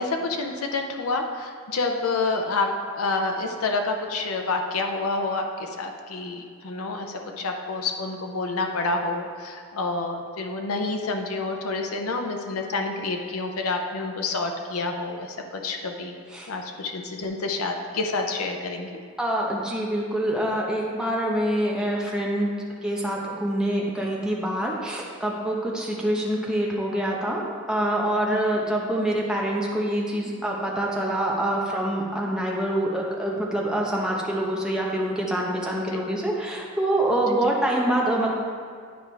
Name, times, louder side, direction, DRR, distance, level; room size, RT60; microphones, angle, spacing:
voice 1, 0.0-2.7 2.9-16.2 16.5-19.0 28.3-28.4, left 3 dB, 90° left, 3 dB, 0.6 m, -28 dB
voice 2, 19.2-22.5 22.8-27.4 27.7-38.3, right 1 dB, 5° right, -3 dB, 0.8 m, -25 dB
10.0 x 4.6 x 3.3 m, 2.1 s
head